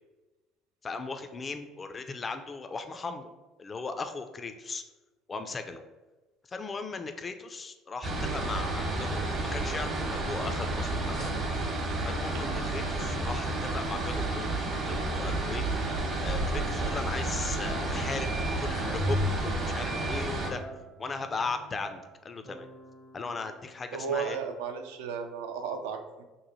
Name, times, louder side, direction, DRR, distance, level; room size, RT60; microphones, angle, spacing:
voice 1, 0.8-3.3 3.6-4.8 5.3-5.8 6.5-11.3 12.0-15.6 16.2-18.3 18.6-20.6 21.0-22.7 23.1-24.4, left 4 dB, 30° left, 8 dB, 0.3 m, -37 dB
sound 1, 8.0-20.5, right 2 dB, 45° right, 0.9 m, -31 dB
sound 2, 17.6-24.0, right 1 dB, 20° right, 0.5 m, -49 dB
Bowed string instrument, 19.0-21.4, left 1 dB, 85° left, 1.4 m, -35 dB
voice 2, 23.9-26.2, right 6 dB, 75° right, 6 dB, 0.3 m, -34 dB
3.0 x 2.1 x 4.0 m, 1.2 s
hypercardioid pair, 60°, 0 cm